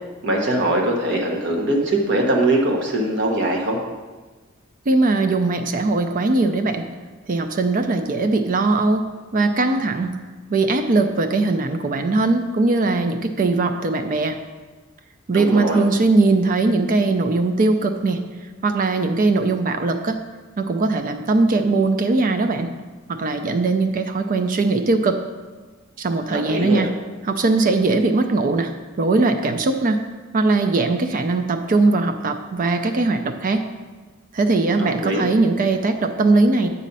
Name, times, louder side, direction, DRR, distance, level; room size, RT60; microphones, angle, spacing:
voice 1, 0.2-3.8 15.3-15.8 26.3-26.9 34.8-35.3, right 1 dB, 60° right, 1 dB, 1.2 m, -21 dB
voice 2, 4.9-6.9 7.3-9.0 9.3-10.2 10.5-14.4 15.3-18.2 18.6-20.2 20.6-22.7 23.1-25.2 26.0-26.9 27.2-28.7 29.0-30.0 30.3-33.6 34.3-36.7, right 3 dB, 45° right, 7 dB, 0.4 m, -20 dB
8.3 x 4.1 x 5.4 m, 1.3 s
head